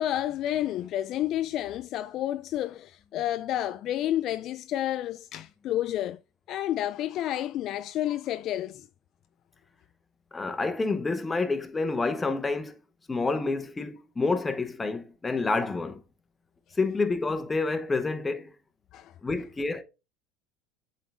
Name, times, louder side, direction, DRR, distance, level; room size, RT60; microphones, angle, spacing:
voice 1, 0.0-6.2 6.5-8.9 18.9-19.1, left 12 dB, 55° left, 0.3 m, -30 dB
voice 2, 10.3-12.8 13.1-16.0 16.7-18.5 19.2-19.8, left 3 dB, 20° left, 1.0 m, -28 dB
7.9 x 3.9 x 3.4 m
hypercardioid pair, 80°, 0 cm